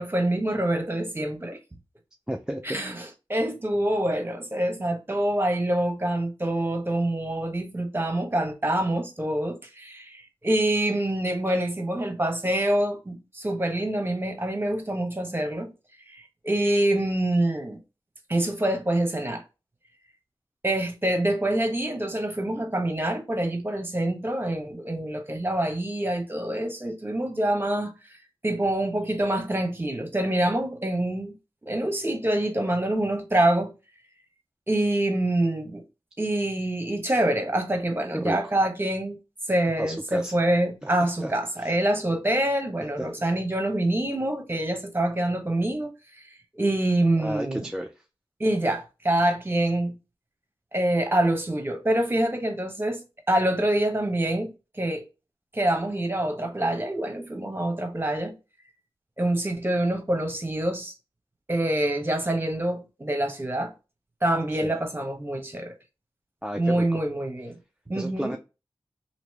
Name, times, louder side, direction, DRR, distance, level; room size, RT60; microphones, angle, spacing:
voice 1, 0.0-1.6 2.6-15.7 16.1-17.8 18.3-19.4 20.6-28.2 28.4-31.3 31.6-33.7 34.7-35.8 36.2-39.2 39.5-46.2 46.6-47.6 48.4-50.0 50.7-53.0 53.3-55.1 55.5-58.3 59.2-60.9 61.5-63.7 64.2-65.8 66.6-67.5 67.9-68.3, right 1 dB, 25° right, 1.1 m, -26 dB
voice 2, 2.3-2.8 38.1-38.4 39.8-40.4 40.8-41.3 41.6-41.7 47.2-47.9 64.6-64.7 66.4-67.0 68.0-68.4, equal, 10° right, 0.4 m, -32 dB
2.9 x 2.8 x 3.2 m
cardioid pair, 45°, 9 cm